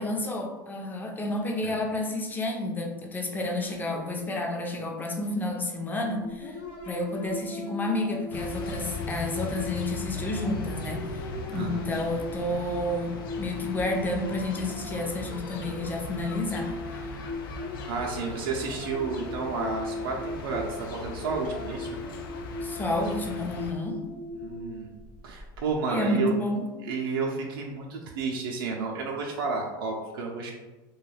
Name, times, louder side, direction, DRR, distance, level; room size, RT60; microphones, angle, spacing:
voice 1, 0.0-6.6 6.8-17.2 22.6-24.0 25.9-26.7, left 2 dB, 15° left, 2 dB, 0.5 m, -30 dB
sound 1, 6.2-25.8, left 2 dB, 55° left, 0.7 m, -39 dB
sound 2, 8.3-23.7, left 3 dB, 90° left, 0.4 m, -39 dB
voice 2, 11.5-11.8 17.8-22.0 24.4-25.0 25.2-26.3 26.8-30.5, right 4 dB, 85° right, -1 dB, 0.4 m, -31 dB
2.2 x 2.2 x 3.2 m, 1.2 s
supercardioid pair, 100°, 11 cm